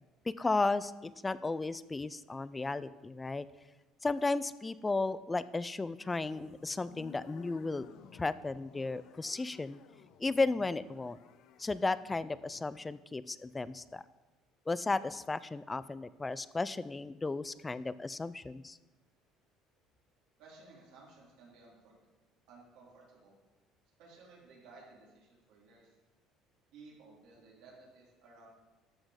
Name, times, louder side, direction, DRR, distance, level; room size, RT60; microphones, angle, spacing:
voice 1, 0.4-3.5 4.0-9.8 10.2-11.2 11.6-14.0 14.7-18.8, left 3 dB, 15° left, 17 dB, 0.4 m, -34 dB
sound 1, 6.1-12.9, left 8 dB, 65° left, 0.6 m, -57 dB
voice 2, 20.4-22.0 22.5-23.3 24.0-26.0 26.7-28.5, right 3 dB, 85° right, -4 dB, 3.1 m, -57 dB
12.5 x 6.2 x 4.9 m, 1.2 s
cardioid pair, 125°, 0 cm